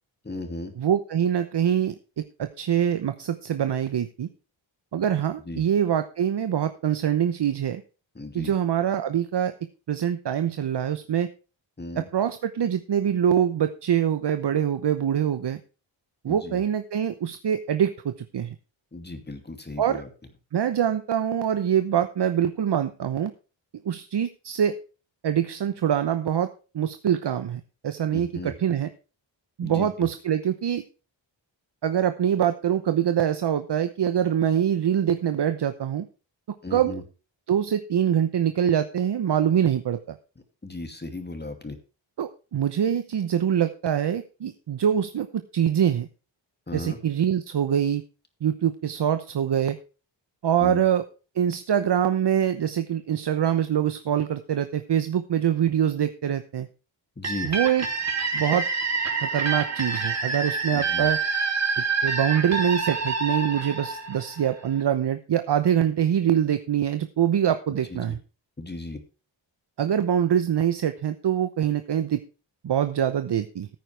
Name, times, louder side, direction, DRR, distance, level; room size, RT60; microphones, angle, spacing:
voice 1, 0.2-0.7 5.5-5.6 8.1-8.5 11.8-12.1 16.3-16.6 18.9-20.1 28.1-28.5 29.6-29.9 36.6-37.0 40.6-41.8 46.7-47.0 50.6-50.8 57.2-57.5 60.7-61.1 67.9-68.2 68.6-69.0, left 2 dB, 20° left, 6 dB, 2.5 m, -36 dB
voice 2, 0.8-4.3 4.9-7.8 8.3-9.5 9.9-11.3 12.0-15.6 16.2-18.5 19.8-20.0 20.5-23.3 23.8-24.8 25.2-26.5 26.7-28.9 29.6-30.8 31.8-36.1 36.7-37.0 37.5-40.2 42.2-46.1 46.7-48.0 48.4-49.8 50.4-51.0 51.4-56.7 57.4-57.8 58.3-58.7 59.2-61.2 61.8-68.2 69.8-72.2 72.6-73.7, right 9 dB, 60° right, 10 dB, 0.9 m, -24 dB
sound 1, 57.2-64.8, right 4 dB, 35° right, 3.1 m, -27 dB
15.0 x 9.3 x 3.4 m, 0.33 s
wide cardioid pair, 130°, 47 cm